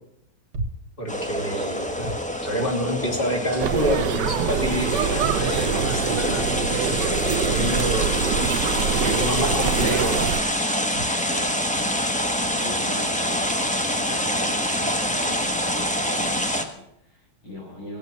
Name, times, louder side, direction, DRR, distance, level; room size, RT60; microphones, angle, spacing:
sound 1, 0.5-0.9 2.0-2.3 3.5-4.0 5.0-5.1 6.5-6.7 9.4-9.7 10.9-11.2 12.4-12.8 13.9-14.0 15.4-15.6, right 2 dB, 85° right, 2.6 m, -36 dB
voice 1, 1.0-2.1 2.4-8.1 8.8-10.2, equal, 25° left, 0 dB, 2.9 m, -28 dB
sound 2, 1.1-16.6, equal, 5° left, 0.8 m, -26 dB
voice 2, 1.6-1.9 11.2-12.0 12.5-18.0, right 1 dB, 80° left, -4 dB, 8.7 m, -40 dB
sound 3, 3.6-10.4, right 9 dB, 65° right, 1.2 m, -25 dB
17.5 x 8.7 x 7.6 m, 0.78 s
omnidirectional pair, 2.3 m